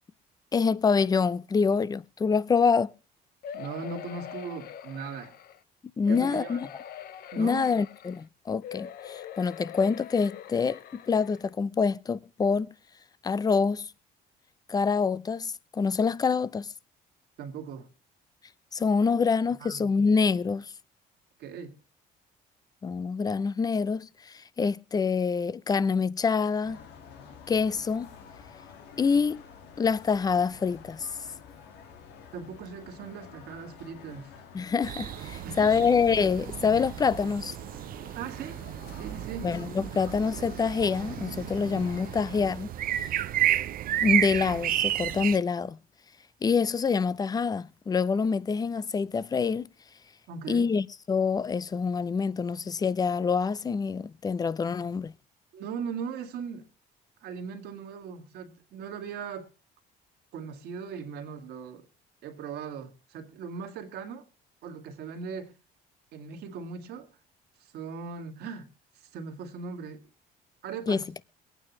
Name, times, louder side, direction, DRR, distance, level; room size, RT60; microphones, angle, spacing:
voice 1, 0.5-2.9 6.0-6.7 7.4-12.7 13.2-13.9 14.7-16.7 18.7-20.7 22.8-26.8 27.5-28.1 29.0-29.4 29.8-31.1 34.5-37.6 39.4-42.7 43.1-43.2 44.0-45.8 46.4-49.7 50.5-55.1 70.9-71.0, left 5 dB, 20° left, 0.5 m, -26 dB
sound 1, 3.4-5.6 6.1-8.2 8.6-11.5 12.1-12.2 12.4-12.5, left 9 dB, 65° left, 0.7 m, -43 dB
voice 2, 3.5-5.4 6.1-6.6 7.3-7.7 17.4-17.9 19.6-19.9 21.4-21.8 32.3-34.3 35.4-35.9 38.1-38.6 38.9-39.5 50.3-50.7 55.5-56.7 57.2-59.5 60.3-61.9 62.2-64.2 64.6-65.5 66.1-67.1 67.6-68.7 68.9-70.1 70.6-71.1, right 6 dB, 75° right, 2.1 m, -39 dB
sound 2, 26.6-42.5, left 6 dB, 90° left, 1.8 m, -50 dB
sound 3, 34.8-45.4, right 12 dB, 60° right, 0.6 m, -32 dB
22.5 x 9.0 x 3.0 m
cardioid pair, 110°, 17 cm